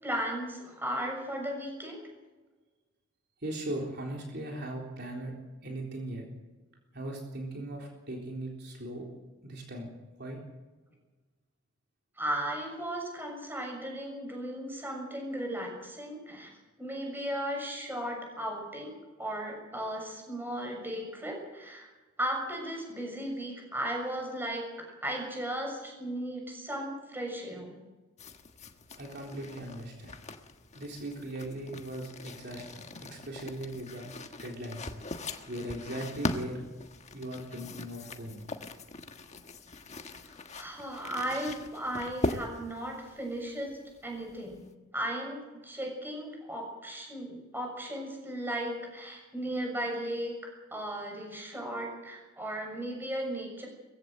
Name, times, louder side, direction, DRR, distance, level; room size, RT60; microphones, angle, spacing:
voice 1, 0.0-2.0 12.2-16.5 16.8-21.9 22.2-27.8 40.2-44.6 44.9-53.7, right 1 dB, 10° right, 1 dB, 6.6 m, -36 dB
voice 2, 3.4-5.3 5.6-6.3 6.9-9.1 9.4-9.9 10.2-10.4 29.0-30.2 30.7-34.1 34.4-34.9 35.5-36.6 37.1-38.4, right 1 dB, 50° right, 0 dB, 3.8 m, -39 dB
sound 1, 28.2-44.7, left 2 dB, 35° left, 1.4 m, -41 dB
21.5 x 16.0 x 7.8 m, 1.2 s
head